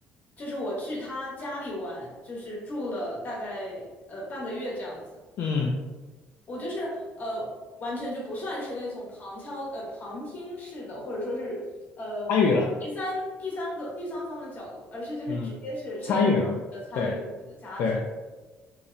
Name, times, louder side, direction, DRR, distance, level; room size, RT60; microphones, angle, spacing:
voice 1, 0.4-5.0 6.5-7.5 7.8-11.7 12.0-12.3 12.8-16.3 16.9-17.2 17.5-17.9, left 1 dB, 40° left, -4 dB, 0.9 m, -34 dB
voice 2, 5.4-5.7 12.3-12.7 15.3-15.5 16.1-16.6 16.9-17.1 17.8-18.0, left 4 dB, 65° left, -1 dB, 0.3 m, -23 dB
2.7 x 2.0 x 2.5 m, 1.2 s
cardioid pair, 130°, 4 cm